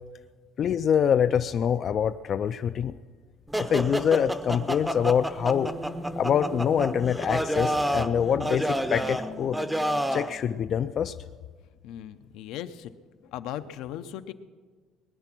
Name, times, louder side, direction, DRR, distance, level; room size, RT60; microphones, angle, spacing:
voice 1, 0.6-2.9 3.6-5.7 6.2-9.6 10.1-11.1, left 8 dB, 40° left, 10 dB, 0.3 m, -25 dB
sound 1, 3.5-10.3, equal, 5° right, 0.6 m, -29 dB
voice 2, 11.8-12.9 13.2-14.3, left 11 dB, 75° left, 10 dB, 0.7 m, -37 dB
20.0 x 9.8 x 6.0 m, 1.5 s
cardioid pair, 145°, 0 cm